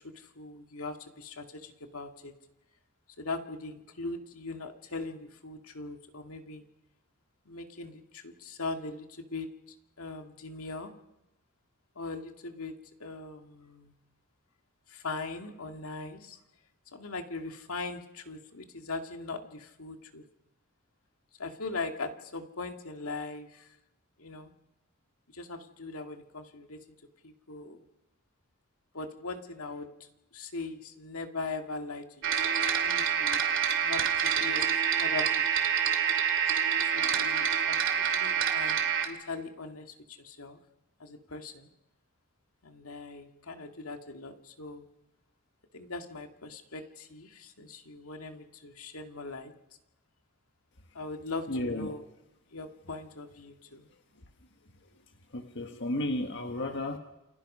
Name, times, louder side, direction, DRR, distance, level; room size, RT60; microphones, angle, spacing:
voice 1, 0.0-2.3 3.2-6.6 7.5-9.5 10.0-10.9 12.0-12.7 13.0-13.9 14.9-16.4 16.9-20.2 21.4-23.7 24.2-24.5 25.3-26.8 27.2-27.8 28.9-33.4 33.8-35.3 35.5-35.7 36.7-40.6 41.0-41.7 42.6-44.8 45.7-49.5 50.9-52.1 52.5-53.9, left 3 dB, 75° left, 4 dB, 2.2 m, -40 dB
sound 1, 32.2-39.1, right 8 dB, 60° right, 2.7 m, -27 dB
voice 2, 51.5-51.9 54.1-54.2 54.8-55.0 55.3-57.0, left 1 dB, 55° left, 4 dB, 1.5 m, -33 dB
29.0 x 24.0 x 5.6 m, 0.92 s
head